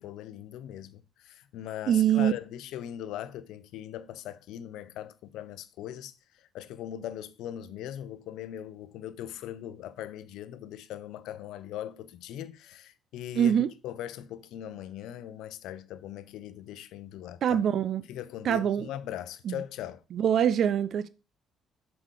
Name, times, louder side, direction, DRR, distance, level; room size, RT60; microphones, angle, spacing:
voice 1, 0.0-6.1 6.5-17.6 18.1-20.0, left 11 dB, 60° left, 0.7 m, -40 dB
voice 2, 1.9-2.3 13.4-13.7 17.4-18.0 18.4-18.9 19.5-19.6 20.1-21.1, right 9 dB, 50° right, 0.5 m, -24 dB
7.3 x 5.0 x 4.9 m
figure-of-eight pair, 50°, 0 cm